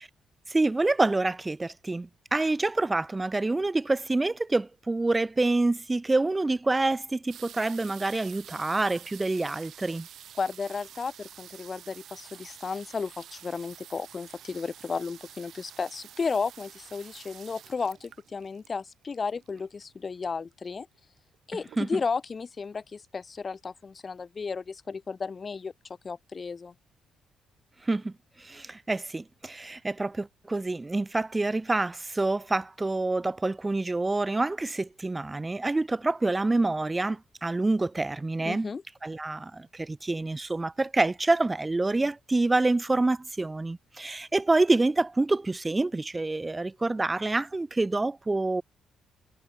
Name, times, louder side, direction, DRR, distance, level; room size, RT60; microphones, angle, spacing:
voice 1, 0.5-10.1 21.8-22.0 27.8-28.1 28.4-38.7 39.0-48.6, right 2 dB, 20° right, 0.4 m, -27 dB
sound 1, 7.3-19.8 20.7-20.8 20.9-21.3 21.7-22.2 22.8-22.9 23.1-23.2, right 10 dB, 70° right, 3.0 m, -49 dB
voice 2, 10.4-20.9 21.5-25.7 26.0-26.7 38.4-38.8, left 5 dB, 35° left, 0.5 m, -33 dB
cardioid pair, 90°, 0 cm